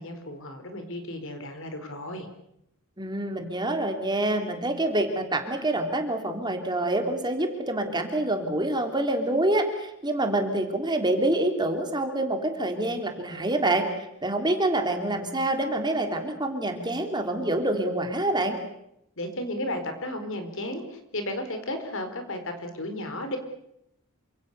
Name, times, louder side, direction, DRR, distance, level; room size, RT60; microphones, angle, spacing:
voice 1, 0.0-2.3 19.2-23.4, left 1 dB, 60° left, 7 dB, 4.5 m, -34 dB
voice 2, 3.0-13.8 14.2-18.5, right 1 dB, 20° right, 5 dB, 3.3 m, -26 dB
28.5 x 26.0 x 6.9 m, 0.80 s
head